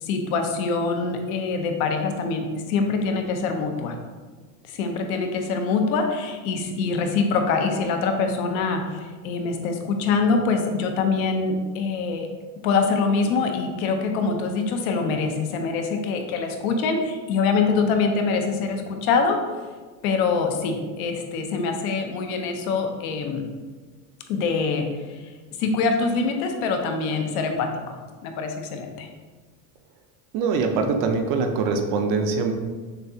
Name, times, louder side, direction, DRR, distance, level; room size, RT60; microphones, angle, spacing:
voice 1, 0.0-4.0 4.7-12.3 12.6-19.4 20.0-23.5 24.3-25.2 25.6-29.1, left 4 dB, 70° left, 4 dB, 0.7 m, -24 dB
voice 2, 30.3-32.5, right 4 dB, 45° right, 5 dB, 0.5 m, -23 dB
6.5 x 2.3 x 2.7 m, 1.4 s
supercardioid pair, 140°, 44 cm